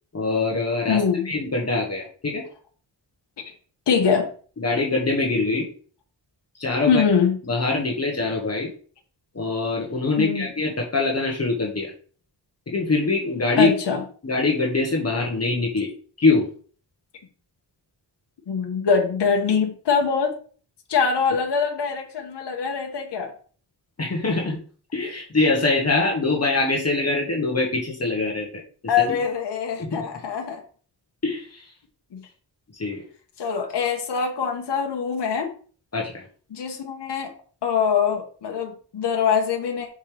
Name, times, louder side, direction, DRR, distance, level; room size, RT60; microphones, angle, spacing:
voice 1, 0.1-2.4 4.6-5.7 6.6-7.0 7.4-8.7 9.3-11.9 12.7-13.7 14.2-15.9 16.2-16.5 24.0-24.6 24.9-28.5 28.8-29.2 29.8-30.1 31.2-31.7 32.8-33.0 35.9-36.2, left 3 dB, 35° left, -1 dB, 1.6 m, -23 dB
voice 2, 0.9-1.3 3.4-3.5 3.9-4.3 6.9-7.4 10.2-10.5 13.6-14.0 18.5-20.3 20.9-23.3 28.9-30.6 32.1-32.2 33.4-35.5 36.5-37.3 37.6-39.9, left 6 dB, 70° left, 2 dB, 1.3 m, -23 dB
6.4 x 5.4 x 3.4 m, 0.42 s
wide cardioid pair, 120°, 42 cm